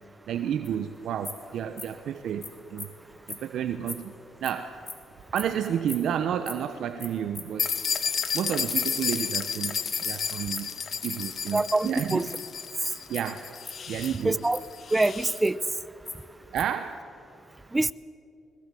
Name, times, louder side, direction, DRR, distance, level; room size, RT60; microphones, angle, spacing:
voice 1, 0.3-2.9 3.3-4.1 4.4-4.7 5.3-7.7 8.3-10.7 11.0-12.3 13.1-13.4 13.9-14.4 16.5-17.0, right 9 dB, 70° right, 8 dB, 1.0 m, -31 dB
sound 1, 0.6-0.7 1.2-1.4 1.8-2.0 2.4-2.5 2.8-2.9 3.3-3.4 3.9-4.0 4.4-4.5 4.9-5.0 5.3-5.4 5.9-6.0 6.5-6.6 7.0-7.1 7.3-7.4 7.8-7.9 8.3-8.4 8.7-8.8 9.1-9.7 10.0-10.1 10.5-10.6 10.9-11.1 11.5-11.6 12.0-12.1 12.3-12.5 12.8-12.9 13.1-13.3 13.6-13.7 14.0-14.6 15.0-15.7 16.0-16.8, left 3 dB, 30° left, 3.3 m, -38 dB
sound 2, 7.6-15.4, left 6 dB, 50° left, 1.3 m, -32 dB
voice 2, 11.5-12.3 14.2-14.6 14.9-15.6 17.7-17.9, right 2 dB, 15° right, 17 dB, 0.6 m, -24 dB
21.0 x 21.0 x 7.8 m, 2.6 s
cardioid pair, 90°, 0 cm